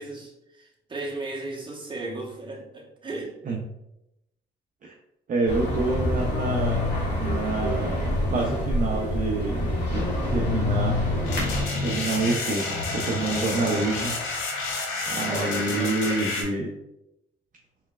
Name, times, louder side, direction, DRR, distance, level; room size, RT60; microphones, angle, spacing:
voice 1, 0.0-3.3 5.7-5.8 13.3-14.0 15.3-16.3, right 2 dB, 25° right, -2 dB, 1.2 m, -35 dB
voice 2, 5.3-10.0 10.3-11.0 11.8-14.2 15.1-16.7, right 3 dB, 40° right, -1 dB, 0.6 m, -28 dB
sound 1, 5.5-11.6, left 1 dB, 60° left, 1.4 m, -26 dB
sound 2, 11.3-16.4, left 3 dB, 85° left, 0.9 m, -29 dB
4.4 x 3.2 x 2.4 m, 0.88 s
cardioid pair, 90°, 20 cm